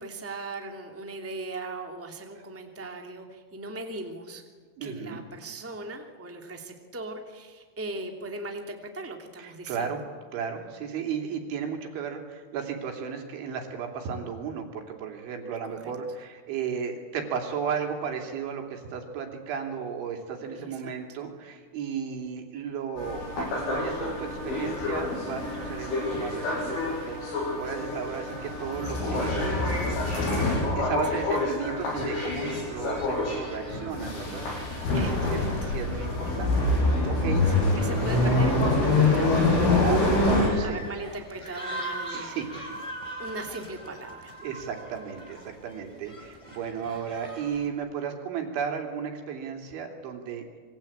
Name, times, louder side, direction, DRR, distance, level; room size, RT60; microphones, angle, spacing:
voice 1, 0.0-4.4 4.8-9.9 15.7-15.9 20.5-20.9 31.1-31.2 34.9-35.7 37.4-39.3 39.7-40.2 40.6-42.3 43.2-44.4, right 2 dB, 10° right, 3 dB, 0.6 m, -39 dB
voice 2, 4.8-5.2 9.4-10.0 10.3-29.7 30.3-35.0 35.3-35.4 35.7-36.5 36.8-37.4 39.6-40.8 42.1-42.5 44.4-50.5, right 6 dB, 70° right, 3 dB, 5.5 m, -34 dB
sound 1, 23.0-40.5, left 2 dB, 70° left, 9.1 m, -26 dB
sound 2, 32.1-47.7, right 1 dB, 5° left, 3.7 m, -43 dB
27.0 x 24.0 x 8.9 m, 1.5 s
omnidirectional pair, 5.8 m